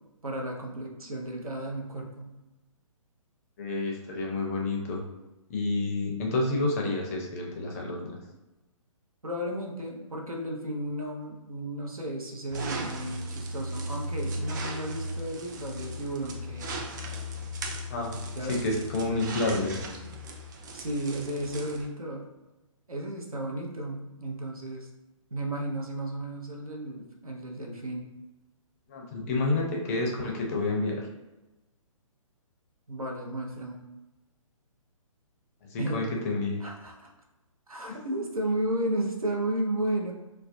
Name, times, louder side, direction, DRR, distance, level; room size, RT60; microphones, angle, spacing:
voice 1, 0.2-2.3 9.2-16.8 18.3-18.6 20.7-22.2 22.9-24.9 25.3-28.1 32.9-33.9 35.8-36.1 36.6-37.1 37.7-40.1, right 1 dB, 90° right, 0 dB, 0.6 m, -33 dB
voice 2, 3.6-5.0 5.5-8.1 17.9-18.1 18.5-19.8 28.9-31.1 35.7-36.6, left 2 dB, 25° left, 0 dB, 0.4 m, -29 dB
sound 1, 12.5-21.8, equal, 35° right, 0.4 m, -36 dB
2.4 x 2.1 x 2.5 m, 1.0 s
figure-of-eight pair, 130°, 18 cm